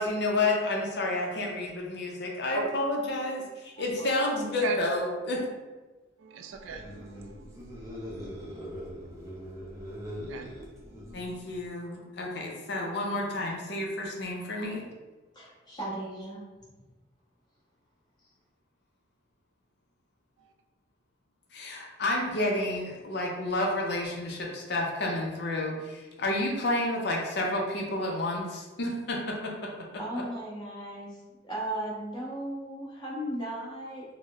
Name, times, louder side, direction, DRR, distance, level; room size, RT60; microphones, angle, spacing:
voice 1, 0.0-5.4 11.1-14.8 21.5-29.5, left 2 dB, 60° left, -1 dB, 0.5 m, -30 dB
voice 2, 6.2-7.9 10.3-10.5, right 5 dB, 80° right, 5 dB, 0.3 m, -37 dB
sound 1, 6.6-11.7, equal, 15° right, 0.5 m, -42 dB
voice 3, 15.3-16.4 30.0-34.0, right 1 dB, 25° left, -7 dB, 0.9 m, -36 dB
3.9 x 2.0 x 2.3 m, 1.2 s
head